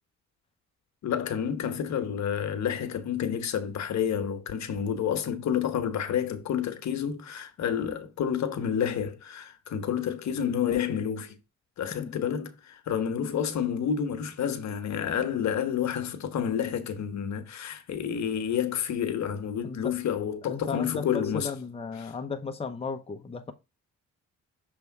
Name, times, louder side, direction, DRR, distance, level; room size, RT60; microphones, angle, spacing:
voice 1, 1.0-11.4 11.8-21.5 22.0-22.1, left 8 dB, 65° left, 1.1 m, -29 dB
voice 2, 20.4-23.5, left 5 dB, 20° left, 0.8 m, -35 dB
6.7 x 3.4 x 4.7 m
cardioid pair, 90°, 30 cm